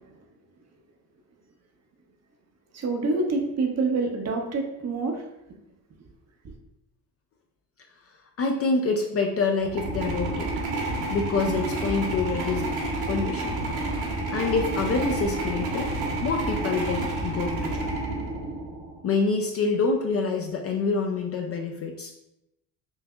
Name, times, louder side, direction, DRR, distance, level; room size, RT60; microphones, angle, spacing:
voice 1, 2.7-5.2, right 3 dB, 35° right, 3 dB, 0.7 m, -26 dB
voice 2, 8.4-10.5 11.1-12.7 13.1-13.6 14.3-15.9 16.2-17.9 19.0-22.1, left 4 dB, 30° left, 2 dB, 0.4 m, -26 dB
sound 1, 9.6-19.0, right 2 dB, 50° right, 1.1 m, -29 dB
4.5 x 2.6 x 2.2 m, 0.87 s
hypercardioid pair, 60°, 47 cm